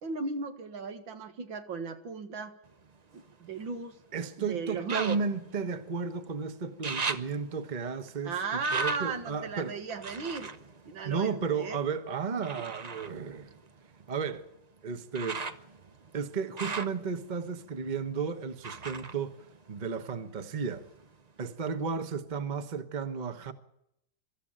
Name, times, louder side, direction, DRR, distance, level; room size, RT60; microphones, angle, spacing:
voice 1, 0.0-2.5 3.1-4.0 4.4-5.2 8.2-10.5 10.9-11.8, right 4 dB, 80° right, 2.4 m, -35 dB
sound 1, 2.7-4.0 4.8-6.3 6.6-11.8 12.4-20.3 20.6-21.4 21.9-22.0, right 5 dB, 60° right, 0.4 m, -40 dB
voice 2, 4.1-8.3 8.7-9.8 11.0-13.5 14.1-14.4 14.8-15.4 16.1-20.9 21.4-23.5, right 5 dB, 25° right, 1.1 m, -33 dB
23.5 x 13.5 x 8.8 m
omnidirectional pair, 2.1 m